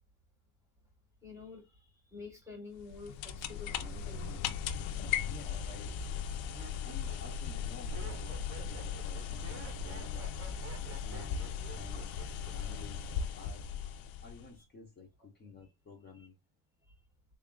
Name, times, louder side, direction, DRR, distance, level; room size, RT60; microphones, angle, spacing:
voice 1, 1.2-4.6 5.1-5.3 10.7-11.1 16.8-16.9, left 3 dB, 5° right, 0.8 m, -50 dB
sound 1, 2.8-14.6, left 7 dB, 75° left, 0.6 m, -38 dB
voice 2, 5.2-6.3 6.8-10.3 11.0-12.1 12.4-13.6 14.2-16.4, left 4 dB, 20° left, 0.6 m, -52 dB
Laughter, 5.5-5.6 6.2-12.8 13.1-13.6, right 6 dB, 30° right, 0.6 m, -51 dB
3.6 x 2.3 x 3.6 m
cardioid pair, 170°, 47 cm